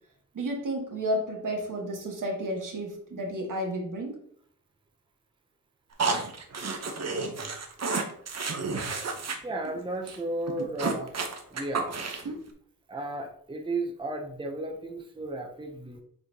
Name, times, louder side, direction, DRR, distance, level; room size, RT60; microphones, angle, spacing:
voice 1, 0.3-4.2, equal, 65° right, 2 dB, 1.5 m, -32 dB
sound 1, 6.0-9.4 9.6-9.8 10.1-10.2 10.5-12.4, right 4 dB, 50° right, 0.9 m, -31 dB
voice 2, 9.4-11.2 11.5-11.9 12.9-16.0, right 2 dB, 15° right, 3 dB, 0.6 m, -34 dB
7.9 x 4.2 x 2.8 m, 0.64 s
wide cardioid pair, 130°, 35 cm